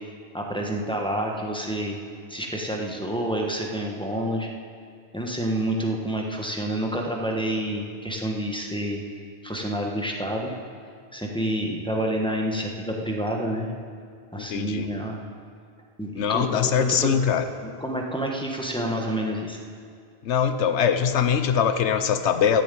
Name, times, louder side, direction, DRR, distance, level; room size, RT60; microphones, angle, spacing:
voice 1, 0.3-2.0 2.3-4.5 5.1-9.0 9.4-10.5 11.1-13.7 14.3-15.2 16.0-17.2 17.6-19.6, right 1 dB, 5° left, -1 dB, 1.3 m, -28 dB
voice 2, 14.4-14.9 16.2-17.4 20.2-22.6, left 7 dB, 85° left, 9 dB, 1.0 m, -22 dB
13.5 x 7.5 x 8.5 m, 2.2 s
omnidirectional pair, 1.1 m